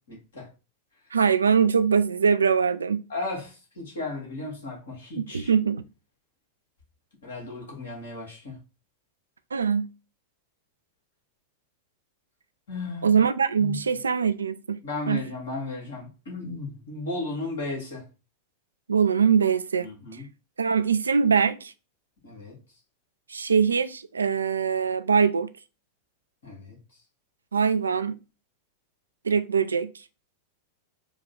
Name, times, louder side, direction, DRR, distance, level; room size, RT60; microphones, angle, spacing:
voice 1, 0.1-0.5 3.1-5.5 7.2-8.6 12.7-13.2 13.6-13.8 14.8-18.0 19.8-20.3 22.2-22.6 26.4-26.8, left 2 dB, 65° left, 2.1 m, -35 dB
voice 2, 1.1-3.0 5.2-5.8 9.5-9.9 13.0-14.8 15.1-15.2 18.9-19.9 20.6-21.7 23.3-25.5 27.5-28.2 29.2-29.9, right 6 dB, 75° right, 0.3 m, -22 dB
4.6 x 2.3 x 4.0 m
figure-of-eight pair, 90°, 0 cm